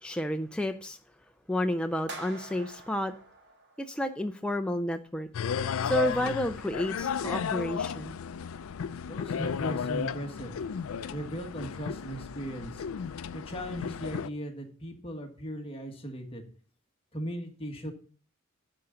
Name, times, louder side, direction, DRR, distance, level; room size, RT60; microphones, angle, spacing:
voice 1, 0.0-1.0 1.5-3.1 3.8-5.3 5.8-8.2, equal, 5° left, 5 dB, 0.4 m, -31 dB
sound 1, 2.1-4.3, right 2 dB, 50° right, 1.5 m, -46 dB
sound 2, 5.3-14.3, left 7 dB, 65° left, 0.4 m, -34 dB
voice 2, 9.1-10.6 11.1-12.8 13.3-16.4 17.1-17.9, equal, 25° left, 3 dB, 1.5 m, -38 dB
11.0 x 3.8 x 6.9 m, 0.43 s
head